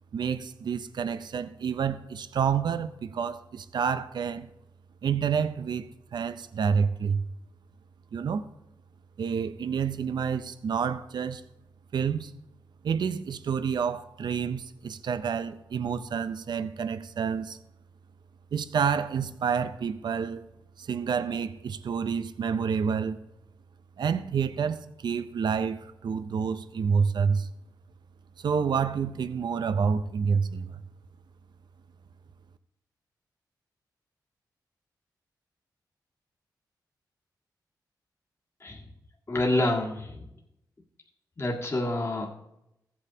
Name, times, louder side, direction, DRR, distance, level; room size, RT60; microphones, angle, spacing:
voice 1, 0.1-4.5 5.0-7.2 8.1-8.5 9.2-11.4 11.9-12.3 12.8-17.6 18.5-20.4 20.8-23.2 24.0-27.5 28.4-30.8, right 6 dB, 70° right, 0.6 m, -28 dB
voice 2, 39.3-40.2 41.4-42.5, left 1 dB, 35° left, 1.8 m, -28 dB
15.0 x 8.5 x 2.8 m
cardioid pair, 65°, 8 cm